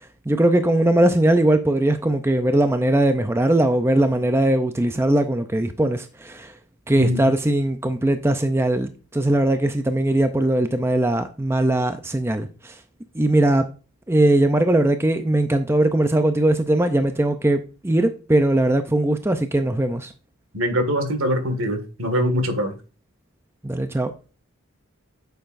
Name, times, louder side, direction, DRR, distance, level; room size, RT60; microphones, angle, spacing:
voice 1, 0.3-6.5 6.9-12.7 13.1-13.7 14.1-20.1 23.6-24.1, right 1 dB, 10° right, 0.5 m, -20 dB
voice 2, 6.9-7.3 20.5-22.7, equal, 70° right, 1.9 m, -23 dB
9.3 x 6.8 x 2.6 m
head